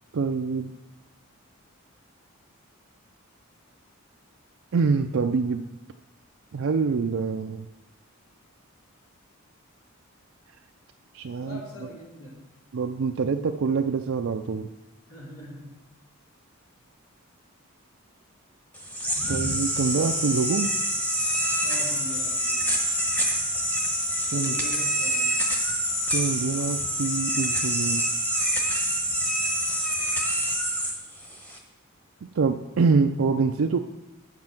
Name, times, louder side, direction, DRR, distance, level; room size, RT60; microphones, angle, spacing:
voice 1, 0.1-0.7 4.7-5.8 6.5-7.7 11.1-11.6 12.7-14.7 19.3-20.7 24.3-24.6 26.1-28.0 32.3-33.8, right 4 dB, 65° right, 5 dB, 0.4 m, -25 dB
voice 2, 11.4-12.4 15.1-15.8 21.6-22.7 24.3-25.4, left 1 dB, 85° left, -4 dB, 3.2 m, -42 dB
sound 1, 18.7-31.6, equal, 5° left, 1.1 m, -26 dB
7.6 x 7.3 x 5.9 m, 1.0 s
head